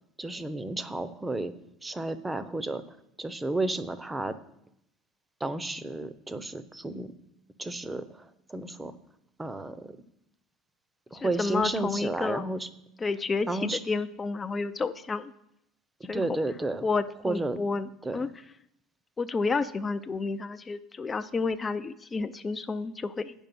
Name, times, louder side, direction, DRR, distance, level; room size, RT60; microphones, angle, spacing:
voice 1, 0.2-1.5 1.8-2.8 3.2-4.3 5.4-7.1 7.6-8.9 9.4-10.0 11.1-12.7 13.5-13.8 16.0-16.8 17.2-17.6 18.0-18.2, right 2 dB, 15° right, 14 dB, 0.8 m, -32 dB
voice 2, 11.1-12.4 13.0-15.3 16.1-16.3 16.8-18.3 19.2-23.3, left 4 dB, 25° left, 11 dB, 0.5 m, -30 dB
8.9 x 5.4 x 6.0 m, 0.79 s
hypercardioid pair, 75°, 0 cm